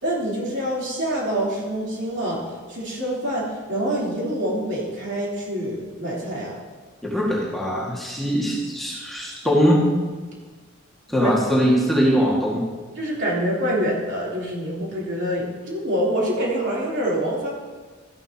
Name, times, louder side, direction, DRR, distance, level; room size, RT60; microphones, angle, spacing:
voice 1, 0.0-2.4 2.7-6.5 11.2-11.3 12.9-17.5, right 1 dB, 60° right, -5 dB, 3.3 m, -26 dB
voice 2, 7.0-9.8 11.1-12.6, equal, ahead, -6 dB, 1.8 m, -21 dB
13.5 x 11.0 x 2.9 m, 1.3 s
head